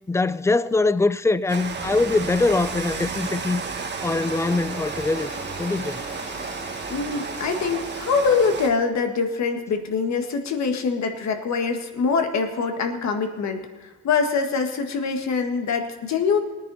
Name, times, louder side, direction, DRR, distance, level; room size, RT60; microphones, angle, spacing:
voice 1, 0.1-3.6 4.0-5.3 5.6-6.0, left 3 dB, 10° left, 0.4 m, -22 dB
Rain, 1.5-8.7, right 4 dB, 35° right, 1.5 m, -32 dB
sound 1, 4.0-8.1, left 2 dB, 30° left, 2.5 m, -42 dB
voice 2, 6.9-16.4, left 5 dB, 65° left, 1.8 m, -24 dB
19.5 x 9.9 x 4.2 m
cardioid pair, 90°, 30 cm